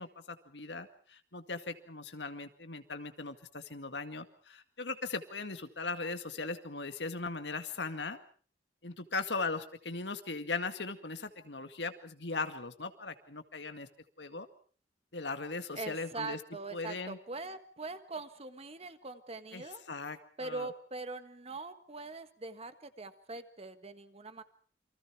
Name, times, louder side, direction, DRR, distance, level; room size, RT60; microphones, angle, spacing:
voice 1, 0.0-8.2 8.8-13.9 14.2-14.5 15.1-16.4 16.7-17.2 19.5-20.7, left 3 dB, 90° left, 8 dB, 2.0 m, -39 dB
voice 2, 15.7-19.8 20.4-24.4, right 3 dB, 35° right, 10 dB, 1.6 m, -42 dB
28.5 x 24.0 x 4.7 m, 0.44 s
head